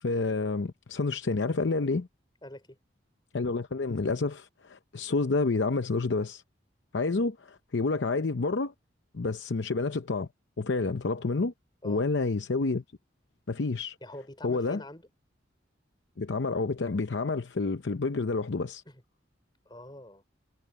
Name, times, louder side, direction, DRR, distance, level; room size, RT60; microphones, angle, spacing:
voice 1, 0.0-2.1 3.3-6.4 6.9-8.7 9.1-10.3 10.6-11.5 11.8-12.8 13.5-14.0 14.4-14.8 16.2-18.8, left 3 dB, 80° left, 0.7 m, -29 dB
voice 2, 2.4-2.8 11.8-12.0 14.0-15.1 18.9-19.0 19.6-20.2, left 1 dB, 25° left, 4.8 m, -45 dB
head